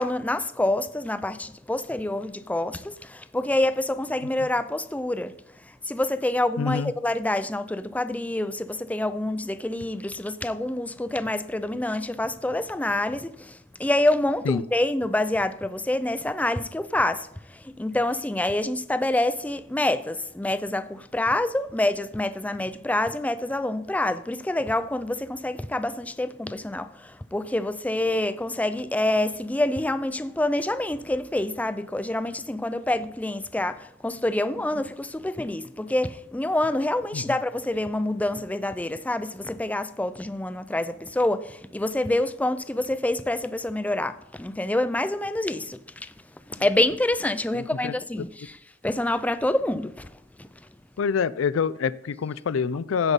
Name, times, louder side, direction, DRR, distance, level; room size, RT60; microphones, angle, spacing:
voice 1, 0.0-5.3 5.9-46.1 46.5-50.1 50.4-50.5, left 1 dB, 10° left, 0.4 m, -27 dB
voice 2, 6.6-6.9 14.5-14.6 37.1-37.2 47.5-47.9 51.0-53.1, left 6 dB, 90° left, 0.4 m, -26 dB
15.5 x 5.2 x 4.1 m
head